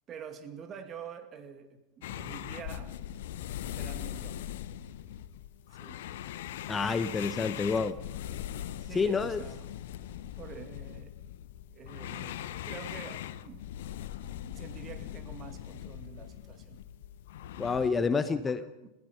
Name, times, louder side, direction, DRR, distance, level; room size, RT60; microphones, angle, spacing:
voice 1, 0.1-3.0 3.6-4.4 5.7-6.0 7.3-8.0 8.8-9.7 10.4-11.1 11.7-13.7 14.2-16.8 18.0-18.9, right 7 dB, 30° right, 8 dB, 2.2 m, -47 dB
sound 1, 2.0-17.9, left 11 dB, 55° left, 1.0 m, -41 dB
voice 2, 6.7-7.9 8.9-9.4 17.6-18.6, left 5 dB, 15° left, 12 dB, 0.9 m, -28 dB
30.0 x 16.5 x 5.5 m, 0.95 s
figure-of-eight pair, 90°, 0 cm